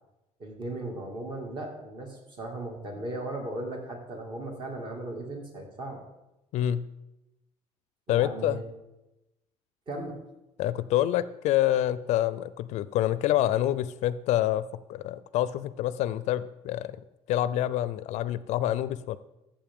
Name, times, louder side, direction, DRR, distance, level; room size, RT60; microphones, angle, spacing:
voice 1, 0.4-6.0 8.1-8.6 9.9-10.2, right 1 dB, 40° right, 1 dB, 2.1 m, -37 dB
voice 2, 8.1-8.6 10.6-14.6 14.9-17.0 17.3-19.2, left 13 dB, 70° left, 16 dB, 0.4 m, -27 dB
14.0 x 7.3 x 3.6 m, 0.96 s
cardioid pair, 155°, 12 cm